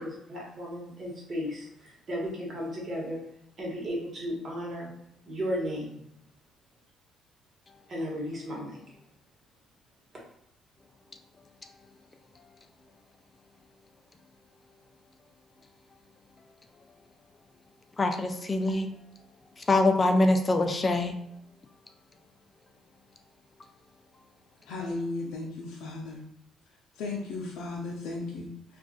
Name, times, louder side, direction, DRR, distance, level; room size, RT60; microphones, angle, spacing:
voice 1, 0.0-3.2 3.6-4.9 5.2-6.0 7.9-8.8, equal, 40° right, 1.3 m, -34 dB
voice 2, 18.0-18.9 19.7-21.1, left 2 dB, 25° left, 0.4 m, -24 dB
voice 3, 24.7-26.2 27.0-28.8, left 3 dB, 85° left, 0.5 m, -36 dB
2.5 x 2.4 x 3.7 m
cardioid pair, 100°, 0 cm